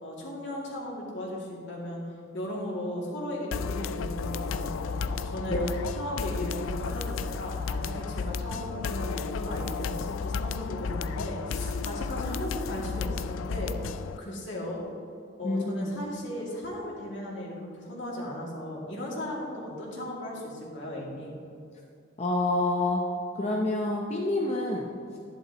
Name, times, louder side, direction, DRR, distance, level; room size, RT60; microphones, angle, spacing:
voice 1, 0.0-2.0 2.3-5.6 5.9-13.8 14.2-14.8 15.4-21.4, left 1 dB, 70° left, -4 dB, 2.4 m, -36 dB
sound 1, 3.5-14.2, left 5 dB, 90° left, 0.4 m, -33 dB
voice 2, 15.4-15.9 22.2-23.1 23.3-25.2, left 2 dB, 35° left, -1 dB, 0.7 m, -28 dB
11.0 x 10.5 x 3.0 m, 2.5 s
head